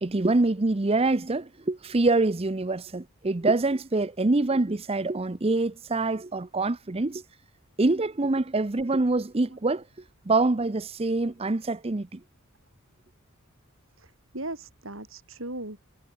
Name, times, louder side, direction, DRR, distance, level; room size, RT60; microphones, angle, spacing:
voice 1, 0.0-7.2 7.8-9.8 10.3-12.2, right 2 dB, 30° right, 0.7 m, -25 dB
voice 2, 14.0-15.9, right 2 dB, 65° right, 6.0 m, -38 dB
head